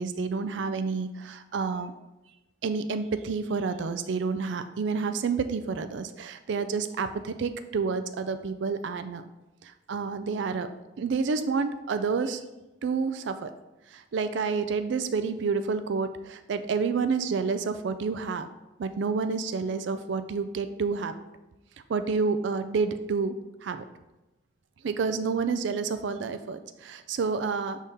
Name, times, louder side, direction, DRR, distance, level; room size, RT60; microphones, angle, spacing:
voice 1, 0.0-1.9 2.6-9.3 9.6-10.7 11.0-12.4 12.8-13.5 13.9-18.5 18.8-21.1 21.9-23.4 23.6-23.8 24.8-27.8, right 5 dB, 75° right, 10 dB, 0.4 m, -29 dB
6.7 x 3.6 x 4.1 m, 1.0 s
head